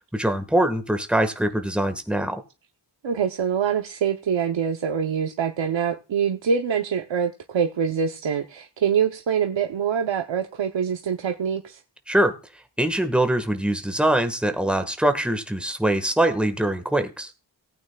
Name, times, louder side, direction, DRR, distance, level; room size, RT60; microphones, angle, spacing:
voice 1, 0.1-2.4 12.1-12.3 12.8-17.3, right 1 dB, ahead, 1.4 m, -23 dB
voice 2, 3.0-11.8, right 7 dB, 85° right, 0.8 m, -25 dB
18.0 x 8.9 x 2.3 m
wide cardioid pair, 105°, 44 cm